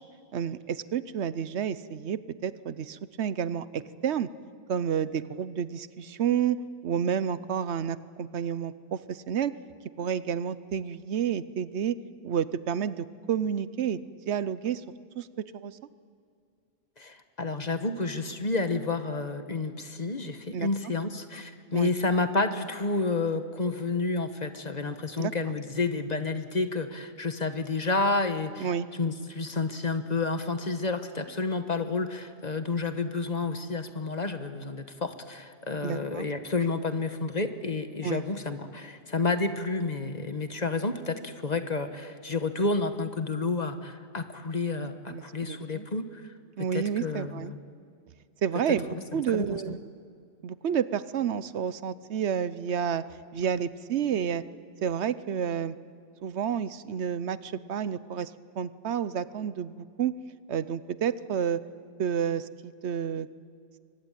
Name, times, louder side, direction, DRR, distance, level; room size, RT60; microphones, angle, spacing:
voice 1, 0.3-4.3 4.7-6.6 6.8-9.5 10.0-12.0 12.2-14.0 14.3-14.8 15.2-15.3 15.5-15.8 20.5-20.7 21.7-21.9 25.2-25.5 28.6-28.9 35.8-36.3 38.0-38.2 45.1-45.8 46.6-47.5 48.4-49.8 50.4-53.0 53.3-54.4 54.8-55.7 56.2-60.1 60.5-61.6 62.0-63.3, right 8 dB, 75° right, 15 dB, 1.0 m, -30 dB
voice 2, 17.0-46.3 46.7-47.6 48.9-49.0 49.3-49.8, left 3 dB, 40° left, 8 dB, 1.3 m, -30 dB
23.5 x 20.0 x 9.0 m, 2.3 s
omnidirectional pair, 1.1 m